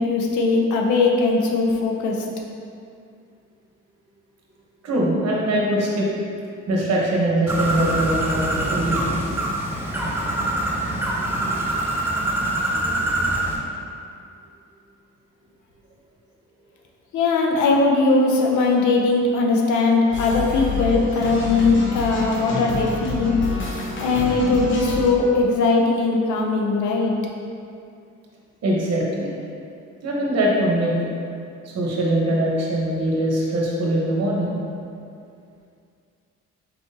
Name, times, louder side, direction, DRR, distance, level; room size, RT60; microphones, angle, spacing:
voice 1, 0.0-2.3 17.1-23.4 24.0-27.1, left 3 dB, 80° left, 0 dB, 0.6 m, -20 dB
voice 2, 4.8-6.1 6.7-9.0 28.6-29.3 30.0-31.0 31.6-34.5, right 1 dB, 55° right, -3 dB, 1.0 m, -22 dB
Bird, 7.5-13.6, right 1 dB, 5° right, 0.6 m, -24 dB
sound 1, 20.1-25.1, left 3 dB, 40° left, 0.8 m, -28 dB
4.3 x 3.5 x 2.7 m, 2.4 s
cardioid pair, 90°, 30 cm